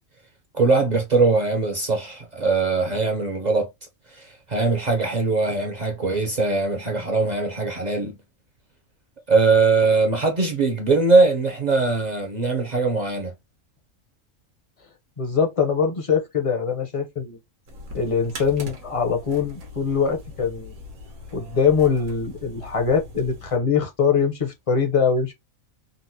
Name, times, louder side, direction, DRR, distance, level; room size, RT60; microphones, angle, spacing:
voice 1, 0.5-3.7 4.1-8.2 9.3-13.3, right 3 dB, 50° right, 0.5 m, -21 dB
voice 2, 15.2-17.4 17.9-20.7 21.3-25.3, left 6 dB, 35° left, 0.5 m, -22 dB
sound 1, 17.7-23.6, left 1 dB, 85° right, 1.4 m, -40 dB
3.9 x 2.0 x 2.7 m
omnidirectional pair, 1.4 m